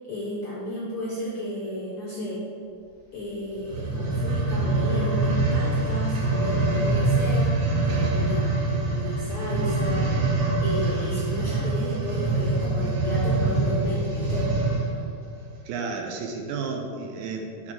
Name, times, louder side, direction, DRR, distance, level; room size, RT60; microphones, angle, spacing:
voice 1, 0.0-2.5 3.1-7.5 7.8-10.2 10.6-14.5, equal, 70° left, -5 dB, 1.3 m, -33 dB
sound 1, 3.6-14.9 15.5-15.6, right 2 dB, 55° right, 2.0 m, -24 dB
voice 2, 15.7-17.7, right 4 dB, 80° right, 2 dB, 1.9 m, -32 dB
7.2 x 3.7 x 6.2 m, 2.4 s
omnidirectional pair, 3.7 m